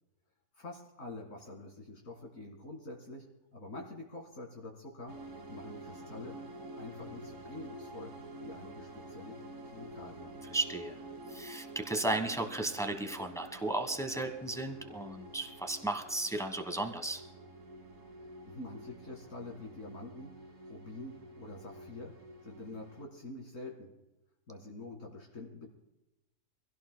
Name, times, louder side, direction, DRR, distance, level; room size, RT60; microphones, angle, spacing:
voice 1, 0.6-5.2 5.5-6.4 6.8-9.4 9.7-10.4 18.2-22.2 22.4-23.9 24.5-25.7, left 2 dB, 55° left, 0 dB, 2.4 m, -46 dB
sound 1, 5.1-23.0, right 1 dB, 60° right, 2.5 m, -49 dB
voice 2, 10.5-11.0 11.3-17.2, right 2 dB, ahead, 6 dB, 1.0 m, -34 dB
24.5 x 16.5 x 2.2 m, 0.96 s
omnidirectional pair, 1.7 m